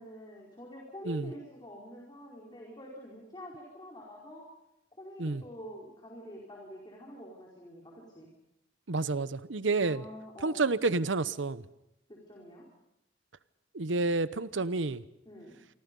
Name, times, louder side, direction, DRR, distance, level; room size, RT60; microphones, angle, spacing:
voice 1, 0.0-4.5 4.9-8.3 9.8-10.6 12.1-12.6 15.2-15.6, equal, 25° left, -2 dB, 4.7 m, -47 dB
voice 2, 8.9-10.0 10.4-11.6 13.7-15.0, right 3 dB, 90° right, 15 dB, 0.9 m, -29 dB
28.0 x 24.5 x 5.4 m, 0.85 s
head